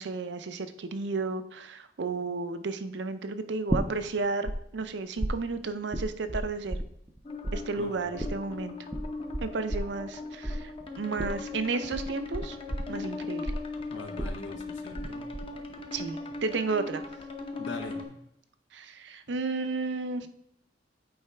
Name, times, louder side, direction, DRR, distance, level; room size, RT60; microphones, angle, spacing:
voice 1, 0.0-6.8 7.5-8.8 9.4-10.7 11.0-12.6 12.9-13.5 15.9-17.0 18.7-20.3, right 3 dB, 65° right, 10 dB, 0.5 m, -33 dB
sound 1, 3.7-4.6 4.8-7.2 7.4-15.1 15.3-15.9, right 1 dB, 15° right, 0.5 m, -33 dB
sound 2, 7.2-18.0, left 3 dB, 30° left, 0.8 m, -39 dB
voice 2, 13.9-15.3 17.6-18.2, left 2 dB, 80° left, 5 dB, 1.0 m, -41 dB
8.7 x 4.6 x 3.4 m, 0.76 s
head